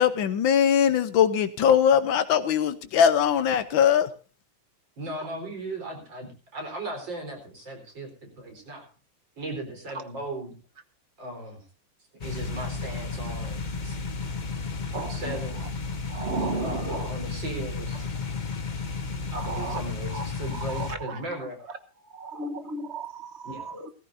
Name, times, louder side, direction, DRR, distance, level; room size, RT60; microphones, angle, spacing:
voice 1, 0.0-4.1, left 8 dB, 85° left, 1.7 m, -21 dB
voice 2, 5.0-8.9 9.4-10.5 11.2-11.6 12.2-14.0 14.9-15.6 16.6-18.2 19.3-21.6 23.4-23.7, right 1 dB, 70° right, 4.9 m, -37 dB
sound 1, 12.2-21.0, left 4 dB, 35° left, 0.8 m, -33 dB
voice 3, 14.9-15.4 16.1-17.1 19.4-19.8 20.1-21.2 22.1-23.9, right 3 dB, 40° right, 1.4 m, -34 dB
17.5 x 15.0 x 2.7 m
omnidirectional pair, 2.1 m